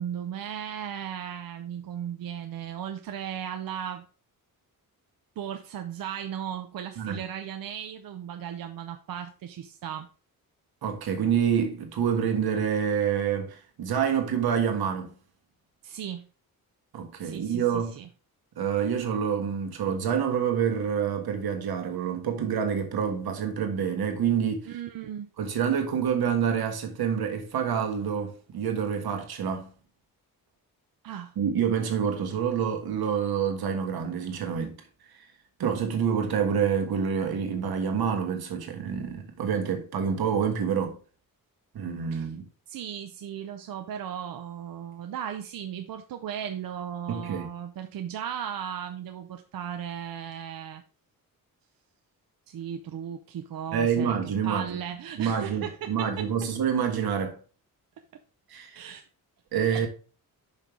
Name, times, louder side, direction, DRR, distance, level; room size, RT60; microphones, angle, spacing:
voice 1, 0.0-4.0 5.4-10.1 15.8-16.3 17.2-18.1 24.7-25.3 31.0-31.3 42.1-42.3 42.7-50.8 52.5-54.2 54.4-56.3 58.7-59.1 59.7-59.9, right 9 dB, 70° right, 0.7 m, -36 dB
voice 2, 10.8-15.2 16.9-18.0 18.6-24.7 25.4-29.7 31.4-34.7 35.6-41.0 41.7-42.4 47.1-47.5 53.7-54.7 55.2-57.4 58.5-58.8 59.5-59.9, right 7 dB, 90° right, 1.6 m, -27 dB
5.7 x 5.4 x 4.6 m
wide cardioid pair, 135°, 36 cm